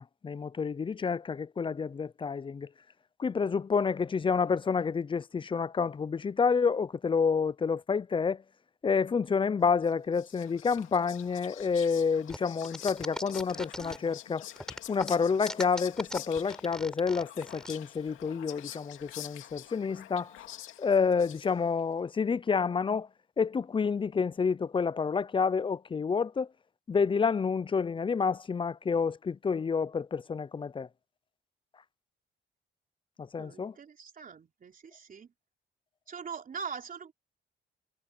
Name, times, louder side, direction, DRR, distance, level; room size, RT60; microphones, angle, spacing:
voice 1, 0.0-2.7 3.2-8.4 8.8-14.5 14.9-20.4 20.8-23.1 23.4-26.5 26.9-30.9 33.2-33.8, left 5 dB, 25° left, 0.5 m, -29 dB
Whispering, 9.8-21.8, left 13 dB, 90° left, 2.3 m, -47 dB
sound 1, 12.3-14.2 14.6-17.7, equal, 5° left, 3.8 m, -40 dB
voice 2, 33.4-35.3 36.1-37.1, right 6 dB, 45° right, 3.8 m, -42 dB
cardioid pair, 90°, 20 cm